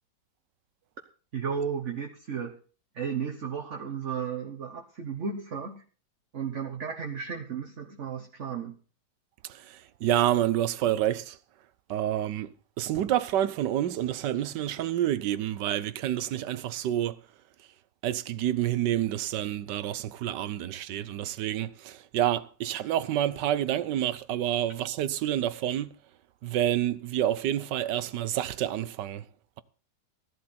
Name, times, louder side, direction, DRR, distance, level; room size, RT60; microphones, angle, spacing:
voice 1, 1.3-2.6 2.9-5.8 6.3-8.8, right 6 dB, 45° right, 1.3 m, -34 dB
voice 2, 9.5-11.4 11.9-12.5 12.8-17.2 18.0-25.9 26.4-29.2, right 12 dB, 75° right, 1.4 m, -28 dB
15.0 x 11.5 x 4.3 m
omnidirectional pair, 1.9 m